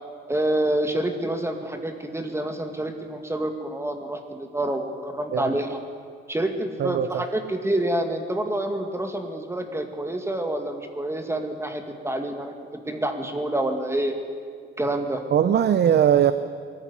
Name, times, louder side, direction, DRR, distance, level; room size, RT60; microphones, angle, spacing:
voice 1, 0.3-5.8 6.3-14.2 14.8-15.2, right 1 dB, 15° right, 5 dB, 2.1 m, -27 dB
voice 2, 6.8-7.2 15.3-16.3, right 9 dB, 55° right, 12 dB, 0.8 m, -20 dB
19.5 x 13.5 x 10.0 m, 2.2 s
cardioid pair, 90°, 20 cm